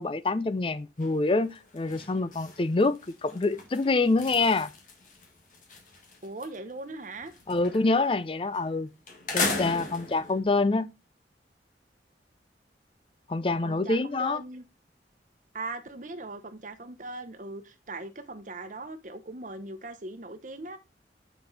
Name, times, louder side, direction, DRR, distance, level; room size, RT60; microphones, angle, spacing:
voice 1, 0.0-4.7 7.5-8.9 9.3-10.9 13.3-14.4, left 3 dB, 30° left, 0.4 m, -26 dB
sound 1, 1.0-1.3 1.6-6.6 6.9-8.1 8.5-8.7 9.1-10.4, left 3 dB, 45° left, 1.9 m, -36 dB
voice 2, 6.2-7.3 13.6-14.7 15.5-20.8, right 2 dB, 45° right, 1.0 m, -40 dB
7.0 x 6.0 x 4.0 m
head